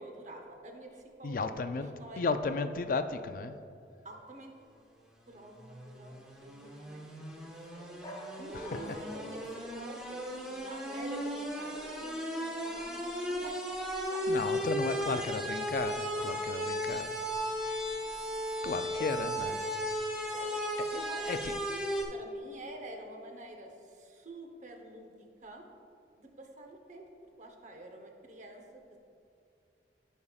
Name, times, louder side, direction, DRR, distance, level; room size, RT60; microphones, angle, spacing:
voice 1, 0.0-2.3 4.0-4.5 5.3-8.0 8.4-13.7 14.1-14.4 14.9-15.3 18.9-19.3 20.3-20.5 20.9-21.4 21.7-25.7 26.2-27.1 27.4-28.8, right 2 dB, 40° right, 2 dB, 0.9 m, -48 dB
voice 2, 1.2-1.9 2.2-3.5 8.5-8.6 14.3-17.2 18.6-19.6 21.2-21.6, left 4 dB, 50° left, 9 dB, 0.4 m, -34 dB
sound 1, 5.3-22.0, equal, 5° right, 0.9 m, -36 dB
sound 2, 8.0-10.5 11.7-12.3 12.7-13.2 16.1-16.8 20.3-21.0, left 1 dB, 25° left, 1.1 m, -48 dB
14.5 x 5.4 x 2.4 m, 2.5 s
head